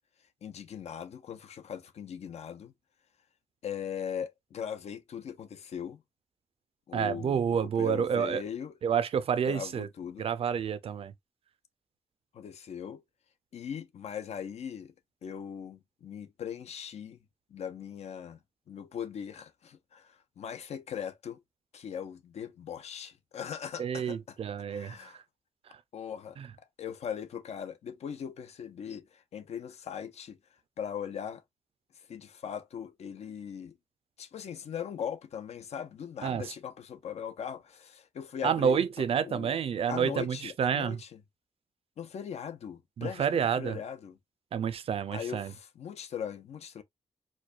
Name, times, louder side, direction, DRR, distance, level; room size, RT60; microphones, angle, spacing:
voice 1, 0.4-2.7 3.6-6.0 6.9-8.7 9.4-10.3 12.3-13.0 13.5-14.9 15.2-17.2 17.5-18.4 18.7-21.4 21.7-24.4 24.7-25.2 25.9-30.4 30.8-31.4 32.1-33.8 34.2-38.8 39.2-39.6 39.9-41.2 42.0-44.2 45.1-46.8, left 8 dB, 80° left, 0.6 m, -40 dB
voice 2, 6.9-8.4 8.8-9.9 10.2-11.1 23.8-25.1 26.4-26.5 36.2-36.4 38.4-41.0 43.0-43.8 44.5-45.5, right 7 dB, 60° right, 0.4 m, -29 dB
4.5 x 2.2 x 2.4 m
wide cardioid pair, 175°, 11 cm